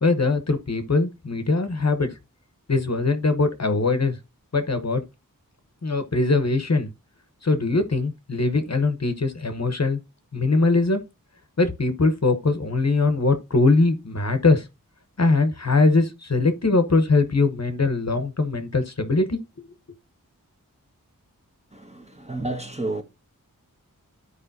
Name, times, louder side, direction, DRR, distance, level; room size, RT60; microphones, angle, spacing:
voice 1, 0.0-2.1 2.7-4.2 4.5-5.0 5.8-6.9 7.4-10.0 10.3-11.0 11.6-14.7 15.2-19.7, left 3 dB, 50° left, 1.0 m, -21 dB
voice 2, 21.7-23.0, right 2 dB, 20° right, 1.3 m, -31 dB
12.5 x 4.9 x 2.7 m
wide cardioid pair, 60°, 34 cm